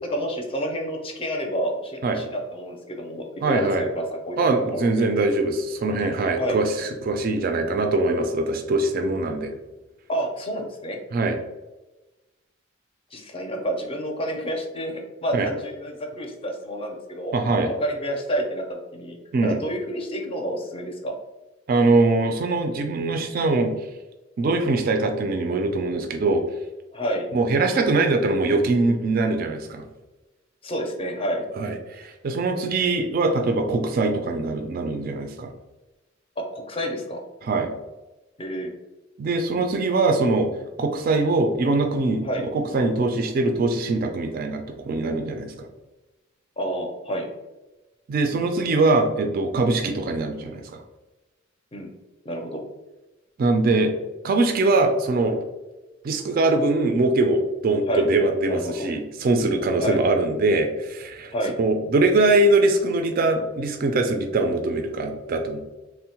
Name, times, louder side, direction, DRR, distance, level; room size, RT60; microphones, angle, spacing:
voice 1, 0.1-4.4 4.7-5.1 6.3-6.6 10.1-11.0 13.1-17.3 17.6-19.2 19.4-21.1 26.9-27.3 30.6-31.4 36.4-37.2 38.4-38.7 42.2-42.4 46.6-47.3 51.7-51.9 52.2-52.6 57.9-58.1 58.5-58.9 59.8-60.0 61.3-61.6, equal, 25° left, 3 dB, 0.5 m, -29 dB
voice 2, 3.4-3.8 4.4-9.5 11.1-11.4 15.3-15.5 17.3-17.7 19.3-19.6 21.7-23.7 24.4-26.4 27.3-29.8 31.6-35.5 37.4-37.7 39.2-40.5 40.8-42.2 42.5-45.7 48.1-50.8 53.4-53.9 54.2-55.4 56.0-61.3 61.6-65.6, right 2 dB, 45° right, 5 dB, 0.3 m, -22 dB
3.4 x 2.0 x 2.8 m, 1.1 s
head